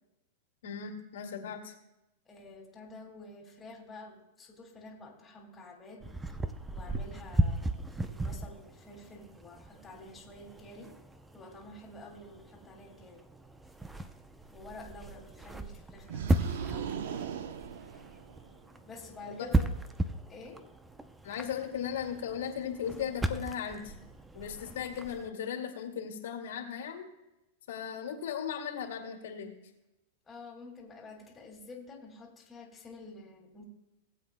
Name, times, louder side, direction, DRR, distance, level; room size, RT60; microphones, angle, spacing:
voice 1, 0.6-1.7 19.3-19.5 21.2-23.9 24.3-27.1 27.7-29.5, left 8 dB, 80° left, 2 dB, 2.1 m, -37 dB
voice 2, 2.3-6.1 6.7-11.0 11.3-13.2 14.5-16.9 18.8-19.7 20.3-20.6 30.3-33.6, left 2 dB, 15° left, 0 dB, 2.1 m, -49 dB
sound 1, 6.0-25.3, right 1 dB, 5° right, 0.6 m, -36 dB
sound 2, 16.1-18.6, right 8 dB, 75° right, 0.8 m, -38 dB
19.0 x 8.1 x 2.2 m, 0.93 s
supercardioid pair, 140°, 0 cm